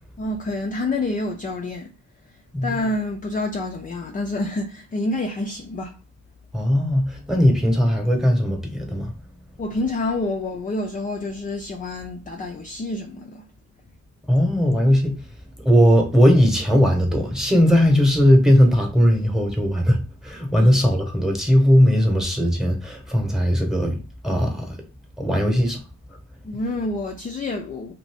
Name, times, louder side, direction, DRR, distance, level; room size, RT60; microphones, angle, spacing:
voice 1, 0.2-1.9 2.6-5.9 9.6-13.4 20.6-20.7 26.4-27.9, left 2 dB, 25° left, 0.4 m, -28 dB
voice 2, 6.5-9.1 14.3-15.2 15.6-24.8 25.2-25.8, equal, ahead, 0.9 m, -18 dB
2.6 x 2.5 x 3.4 m
cardioid pair, 100°, 32 cm